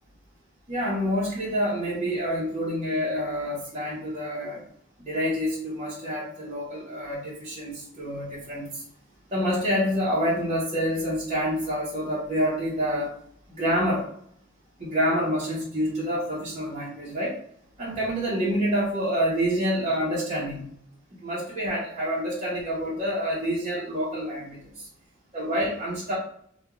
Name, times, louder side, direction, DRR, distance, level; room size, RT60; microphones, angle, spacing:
voice 1, 0.7-4.6 5.0-8.8 9.3-13.1 13.5-14.1 14.8-17.4 17.8-20.6 21.2-24.9 25.3-26.1, equal, 35° right, -8 dB, 0.8 m, -27 dB
2.9 x 2.3 x 2.3 m, 0.67 s
head